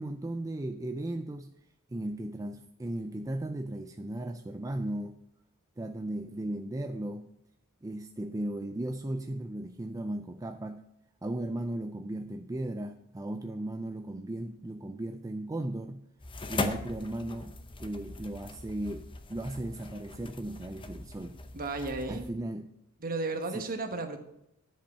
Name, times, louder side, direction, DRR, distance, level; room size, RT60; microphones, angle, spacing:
voice 1, 0.0-1.5 1.9-5.2 5.8-7.3 7.8-10.8 11.2-16.0 16.5-21.4 22.1-22.7 23.5-23.7, right 1 dB, 15° right, 6 dB, 0.4 m, -36 dB
sound 1, 16.2-22.3, left 2 dB, 25° left, 0.7 m, -40 dB
voice 2, 21.5-22.2 23.0-24.2, right 3 dB, 45° right, 6 dB, 1.2 m, -34 dB
10.0 x 5.3 x 5.5 m, 0.83 s
head